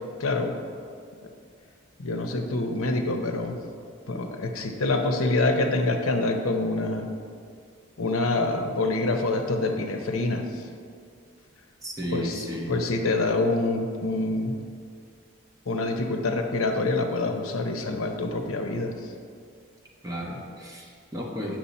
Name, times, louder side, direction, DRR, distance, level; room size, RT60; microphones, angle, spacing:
voice 1, 0.2-0.6 1.2-1.3 2.0-3.6 4.1-7.1 8.0-10.6 12.1-14.6 15.7-18.9, left 2 dB, 80° left, 4 dB, 0.8 m, -26 dB
voice 2, 11.8-12.7 20.0-21.6, equal, 15° right, -3 dB, 1.0 m, -33 dB
8.6 x 6.2 x 4.2 m, 2.2 s
head